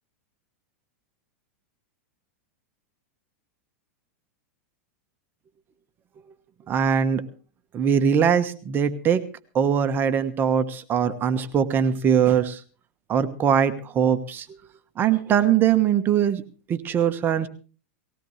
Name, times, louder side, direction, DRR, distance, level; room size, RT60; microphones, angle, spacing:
voice 1, 6.7-7.2 7.7-9.2 9.5-12.6 13.1-14.4 15.0-16.4 16.7-17.5, right 8 dB, 30° right, 9 dB, 1.2 m, -21 dB
19.5 x 16.5 x 3.3 m, 0.38 s
supercardioid pair, 130°, 7 cm